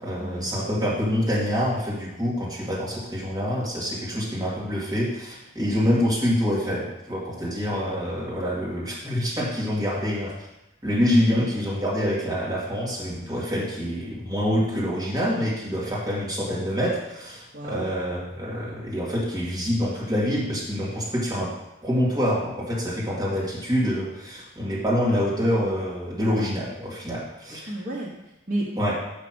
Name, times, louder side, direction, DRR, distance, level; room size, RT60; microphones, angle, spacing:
voice 1, 0.0-10.3 10.8-21.5 21.8-27.7 28.8-28.9, equal, 20° right, -7 dB, 2.3 m, -26 dB
voice 2, 17.5-17.9 27.7-28.9, right 1 dB, 45° right, -5 dB, 1.1 m, -33 dB
6.3 x 5.9 x 6.1 m, 0.91 s
head